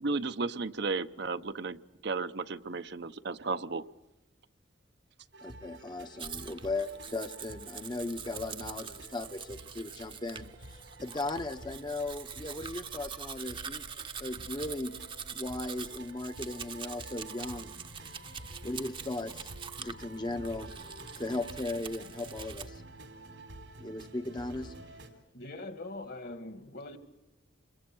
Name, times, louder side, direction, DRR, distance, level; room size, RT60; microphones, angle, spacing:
voice 1, 0.0-3.8, right 3 dB, 65° right, 0.8 m, -34 dB
sound 1, 5.3-25.1, right 1 dB, 90° right, 4.0 m, -50 dB
voice 2, 5.4-13.8 14.2-14.9 15.3-17.7 18.6-19.5 19.8-20.7 21.2-22.8 23.8-24.7, left 2 dB, 25° left, 0.8 m, -37 dB
Domestic sounds home sounds, 6.2-22.7, right 6 dB, 30° right, 0.8 m, -44 dB
voice 3, 25.3-27.0, left 2 dB, 60° left, 2.1 m, -42 dB
29.0 x 23.0 x 6.2 m
head